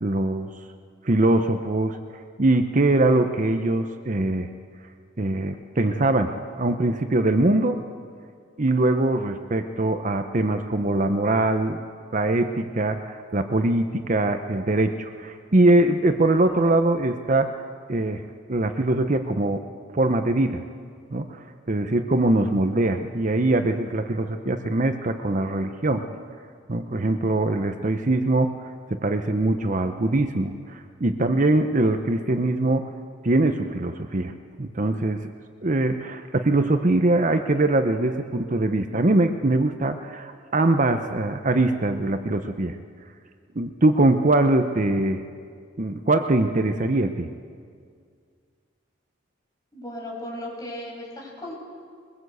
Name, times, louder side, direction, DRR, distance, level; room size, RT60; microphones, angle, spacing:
voice 1, 0.0-0.5 1.0-2.0 2.4-4.5 5.2-7.8 8.6-11.8 12.1-17.5 17.9-18.2 18.5-19.6 19.9-20.6 21.1-26.2 26.7-28.5 28.9-32.9 33.2-34.3 34.6-35.3 35.6-42.8 43.6-45.2 45.8-47.3, right 2 dB, 40° right, 7 dB, 0.8 m, -22 dB
voice 2, 49.7-51.5, left 1 dB, 20° left, -2 dB, 6.3 m, -36 dB
22.5 x 21.0 x 8.1 m, 2.1 s
head